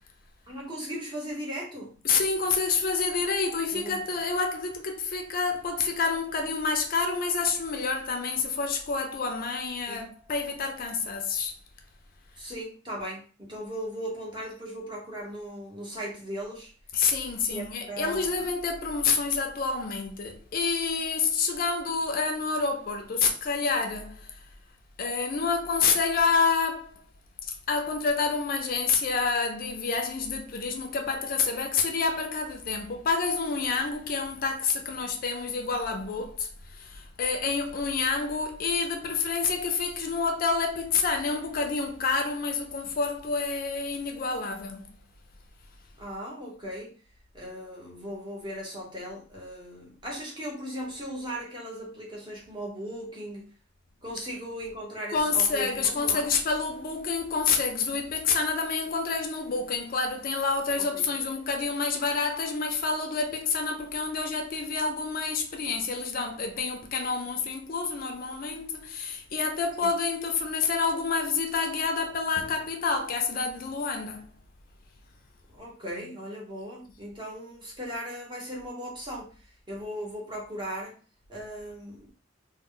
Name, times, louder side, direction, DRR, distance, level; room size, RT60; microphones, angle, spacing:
voice 1, 0.5-2.0 3.7-4.2 9.9-10.1 12.4-16.7 17.5-18.5 46.0-46.9 47.3-53.5 54.0-56.3 60.8-61.1 75.5-79.3 79.7-80.9 81.3-82.1, equal, 25° right, 0.8 m, -38 dB
voice 2, 2.0-11.5 16.9-24.3 25.0-27.0 27.7-44.9 55.1-74.3, left 4 dB, 50° left, 0.4 m, -28 dB
2.1 x 2.0 x 3.7 m
head